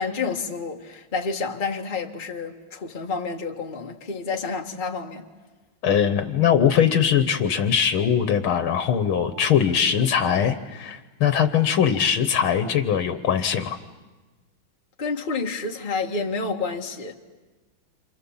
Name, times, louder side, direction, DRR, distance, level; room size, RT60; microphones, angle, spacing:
voice 1, 0.0-5.3 15.0-17.1, left 4 dB, 25° left, 1.6 m, -29 dB
voice 2, 5.8-13.8, left 8 dB, 80° left, 1.9 m, -21 dB
28.5 x 28.0 x 7.2 m
omnidirectional pair, 2.3 m